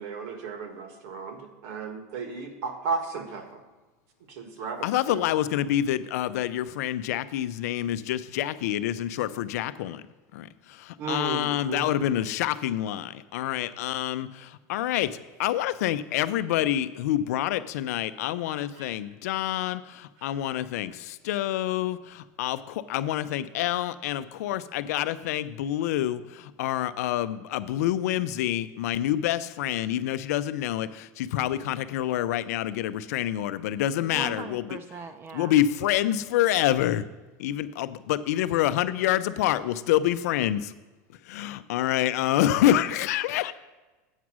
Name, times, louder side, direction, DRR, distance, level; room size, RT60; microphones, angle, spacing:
voice 1, 0.0-3.6 4.3-5.2 11.0-11.9 18.5-18.9, right 5 dB, 70° right, 5 dB, 1.6 m, -34 dB
voice 2, 4.8-10.0 10.3-34.6 35.3-37.0 37.4-40.7 41.3-43.5, left 12 dB, 80° left, 14 dB, 0.5 m, -27 dB
voice 3, 34.1-35.5, right 5 dB, 30° right, 11 dB, 0.5 m, -39 dB
8.2 x 6.1 x 6.1 m, 1.2 s
supercardioid pair, 140°, 8 cm